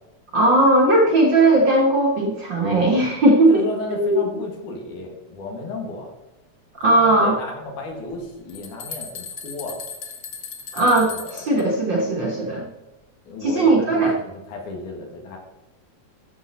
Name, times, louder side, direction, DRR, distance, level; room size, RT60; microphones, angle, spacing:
voice 1, 0.3-3.6 3.9-4.2 6.8-7.4 10.7-12.6 13.4-14.2, right 2 dB, 55° right, -2 dB, 1.3 m, -18 dB
voice 2, 3.5-6.1 6.9-9.8 11.0-11.5 13.3-15.4, left 2 dB, 75° left, 1 dB, 3.4 m, -33 dB
sound 1, 8.1-8.2 8.5-11.6, left 6 dB, 60° left, 1.1 m, -36 dB
12.5 x 6.9 x 4.1 m, 1.1 s
omnidirectional pair, 3.6 m